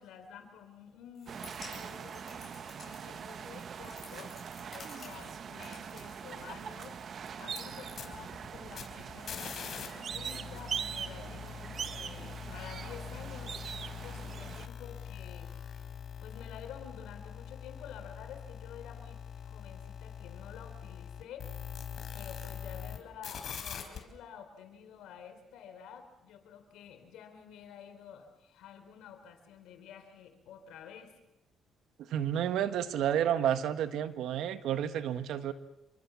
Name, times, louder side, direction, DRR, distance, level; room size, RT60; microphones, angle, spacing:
voice 1, 0.0-1.4 1.7-2.5 2.8-4.4 4.7-15.5 16.2-21.5 22.1-31.1, left 8 dB, 85° left, 7 dB, 4.1 m, -50 dB
sound 1, 1.1-6.9, left 5 dB, 40° left, 8.0 m, -54 dB
sound 2, 1.3-14.7, right 7 dB, 55° right, 1.2 m, -42 dB
sound 3, 7.4-9.9 10.1-23.0 23.2-24.0, left 8 dB, 60° left, 4.3 m, -43 dB
voice 2, 32.0-35.5, right 10 dB, 80° right, 11 dB, 1.5 m, -30 dB
27.0 x 24.0 x 7.2 m, 0.92 s
cardioid pair, 90°, 0 cm